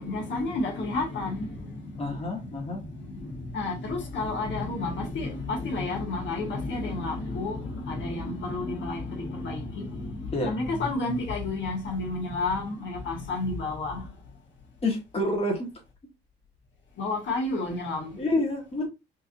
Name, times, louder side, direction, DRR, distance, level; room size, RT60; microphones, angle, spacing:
voice 1, 0.0-14.1 17.0-18.2, left 2 dB, 70° left, 1.5 m, -31 dB
voice 2, 2.0-2.8 10.3-10.6 14.8-15.7 18.2-18.9, left 1 dB, 30° left, 1.4 m, -28 dB
4.5 x 2.8 x 2.6 m
cardioid pair, 90°, 20 cm